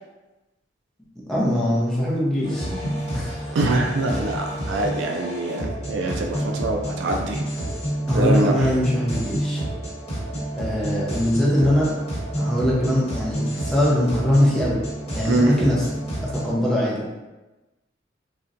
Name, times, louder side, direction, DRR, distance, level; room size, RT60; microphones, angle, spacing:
voice 1, 1.3-3.4 8.1-9.6 10.6-11.9 12.4-14.8 15.1-15.8 16.2-17.2, equal, 5° left, -6 dB, 0.7 m, -22 dB
sound 1, 2.4-16.5, right 1 dB, 35° left, 1.1 m, -29 dB
voice 2, 3.5-7.4 8.1-8.7 15.2-15.5, right 2 dB, 70° right, 2 dB, 0.4 m, -24 dB
4.0 x 2.1 x 2.5 m, 1.1 s
head